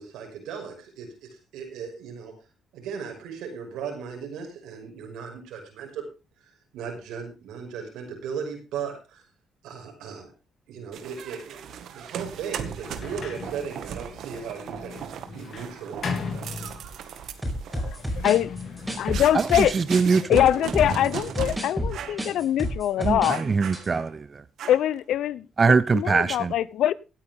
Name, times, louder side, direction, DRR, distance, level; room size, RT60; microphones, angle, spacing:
voice 1, 0.0-2.3 2.7-6.1 6.7-9.2 9.6-10.3 10.7-15.0 15.3-16.6, right 6 dB, 90° right, 5.7 m, -37 dB
sound 1, 10.9-21.6 21.9-22.3 22.6-22.8 23.3-24.2 24.6-25.0, right 8 dB, 75° right, 1.8 m, -38 dB
Sliding door, 12.7-17.2 17.9-22.7, left 4 dB, 55° left, 3.3 m, -38 dB
sound 2, 17.4-20.0 20.3-23.4 23.6-23.8, equal, 5° right, 5.1 m, -30 dB
voice 2, 17.7-18.6 18.9-19.8 20.2-23.4 24.7-26.9, left 11 dB, 80° left, 0.7 m, -23 dB
voice 3, 19.7-20.2 23.0-23.2 23.5-24.2 25.6-26.5, right 4 dB, 35° right, 0.7 m, -21 dB
17.5 x 9.2 x 3.6 m
cardioid pair, 90°, 0 cm